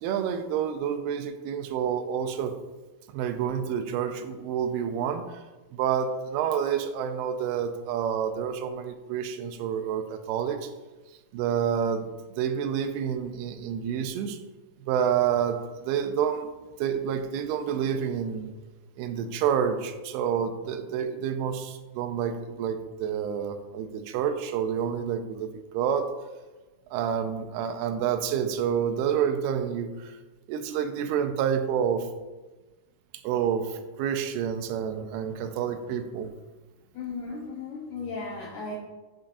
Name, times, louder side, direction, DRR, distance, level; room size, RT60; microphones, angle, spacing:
voice 1, 0.0-2.6 3.1-5.4 5.7-10.7 11.3-12.1 12.4-14.4 14.8-16.5 16.8-18.5 19.0-26.1 26.9-30.2 30.5-32.1 33.2-36.3, right 8 dB, 85° right, 8 dB, 2.6 m, -28 dB
voice 2, 36.9-38.8, left 4 dB, 90° left, -2 dB, 1.7 m, -35 dB
9.4 x 7.3 x 2.6 m, 1.2 s
omnidirectional pair, 4.6 m